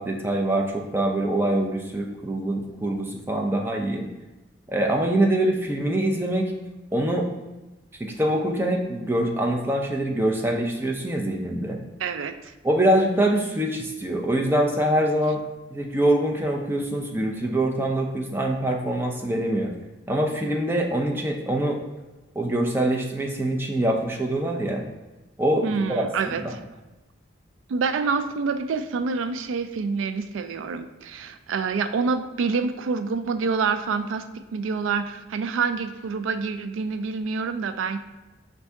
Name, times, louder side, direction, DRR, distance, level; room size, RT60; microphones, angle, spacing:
voice 1, 0.0-4.1 4.7-6.5 6.9-7.3 8.0-11.8 12.6-15.4 15.7-19.7 20.1-21.8 22.4-24.8 25.4-26.6, right 1 dB, 10° right, 1 dB, 0.4 m, -24 dB
voice 2, 12.0-12.5 25.6-26.6 27.7-38.0, right 5 dB, 80° right, 9 dB, 0.3 m, -27 dB
5.3 x 2.6 x 3.4 m, 1.1 s
head